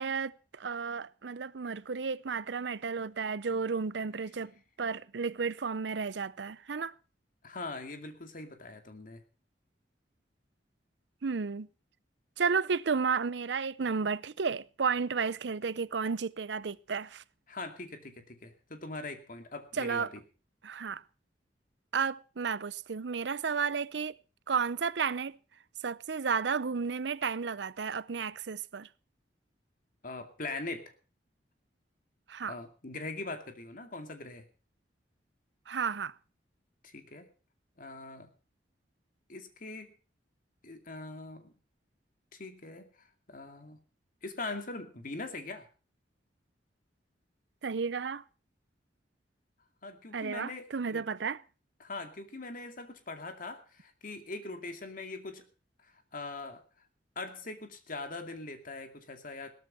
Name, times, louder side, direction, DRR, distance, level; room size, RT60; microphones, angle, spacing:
voice 1, 0.0-4.5 4.8-6.9 11.2-11.7 12.4-17.2 19.8-20.1 20.6-21.0 21.9-24.1 24.5-25.4 25.8-28.9 32.3-32.6 35.7-36.1 47.6-48.2 50.1-51.4, right 5 dB, 80° right, 0.6 m, -32 dB
voice 2, 7.4-9.2 17.5-20.2 30.0-30.9 32.5-34.5 36.8-37.3 37.8-38.3 39.3-39.9 40.6-41.5 42.3-43.8 44.2-45.7 49.8-51.0 51.8-55.5 55.8-56.6 57.2-59.5, left 3 dB, 50° left, 2.4 m, -42 dB
17.5 x 13.0 x 4.4 m
head